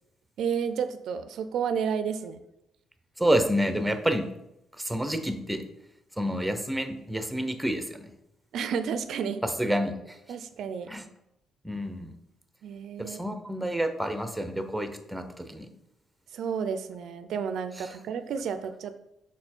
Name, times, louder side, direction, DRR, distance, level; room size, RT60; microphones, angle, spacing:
voice 1, 0.4-2.4 8.5-9.4 10.3-10.9 12.6-13.3 16.3-19.0, right 7 dB, 75° right, 11 dB, 0.4 m, -31 dB
voice 2, 3.2-4.2 4.8-5.6 6.2-8.1 9.6-9.9 10.9-11.0 11.6-12.1 13.0-15.7, equal, 5° right, 8 dB, 0.7 m, -28 dB
5.9 x 4.4 x 4.3 m, 0.86 s
cardioid pair, 90°, 0 cm